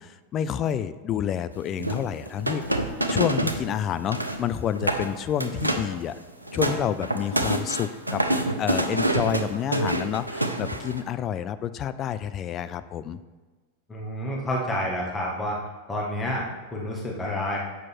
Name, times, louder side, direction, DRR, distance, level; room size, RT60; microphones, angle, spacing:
voice 1, 0.0-6.2 6.5-8.2 8.6-13.2, left 9 dB, 30° left, 13 dB, 0.4 m, -29 dB
sound 1, 1.8-3.7 3.9-4.4 4.8-5.1 5.4-5.9 6.3-11.0, right 1 dB, 85° right, 0.7 m, -26 dB
voice 2, 13.9-15.6 15.9-17.6, left 1 dB, 15° left, -2 dB, 1.5 m, -29 dB
8.0 x 6.0 x 4.4 m, 1.3 s
figure-of-eight pair, 90°, 0 cm